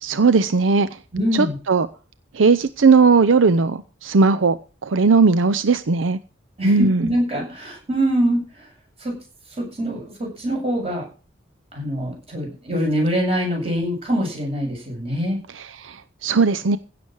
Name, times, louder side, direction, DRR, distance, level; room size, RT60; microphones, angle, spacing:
voice 1, 0.0-0.9 1.3-1.9 2.3-4.6 4.8-6.2 6.6-7.1 15.5-16.8, right 4 dB, 80° right, 12 dB, 0.6 m, -17 dB
voice 2, 1.1-1.6 6.6-8.5 9.0-9.2 9.6-11.0 11.7-15.4, equal, 30° right, 0 dB, 7.8 m, -24 dB
16.0 x 7.0 x 6.3 m, 0.35 s
head